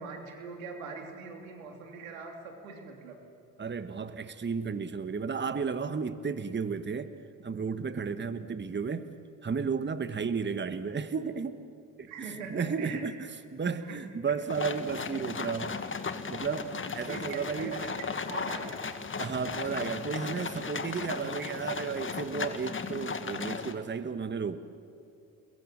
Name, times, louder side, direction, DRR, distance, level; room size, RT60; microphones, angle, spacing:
voice 1, 0.0-3.2 12.1-13.0 13.8-14.0 17.1-18.8, right 4 dB, 90° right, 3 dB, 3.2 m, -42 dB
voice 2, 3.6-7.1 7.4-9.1 9.4-11.6 12.0-15.7 16.3-17.9 19.2-24.6, right 5 dB, 30° right, 11 dB, 1.4 m, -33 dB
sound 1, 14.5-23.7, left 5 dB, 30° left, 1.9 m, -36 dB
29.5 x 21.5 x 7.8 m, 2.6 s
hypercardioid pair, 55°, 39 cm